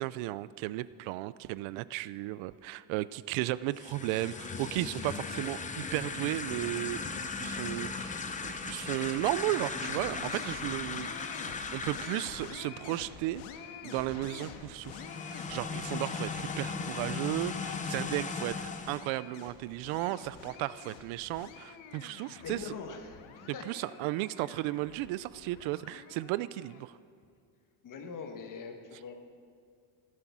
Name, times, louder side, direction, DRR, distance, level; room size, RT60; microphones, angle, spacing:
voice 1, 0.0-11.2 11.7-13.4 13.8-15.0 15.3-22.6 23.7-27.0, right 17 dB, 75° right, 18 dB, 0.6 m, -35 dB
sound 1, 3.7-12.7 14.8-19.1, left 4 dB, 15° left, 0.7 m, -37 dB
sound 2, 9.8-26.8, left 7 dB, 75° left, 1.6 m, -48 dB
voice 2, 20.4-20.7 22.0-23.6 27.8-29.1, left 5 dB, 40° left, 4 dB, 1.7 m, -43 dB
16.0 x 12.0 x 6.1 m, 2.2 s
cardioid pair, 150°, 47 cm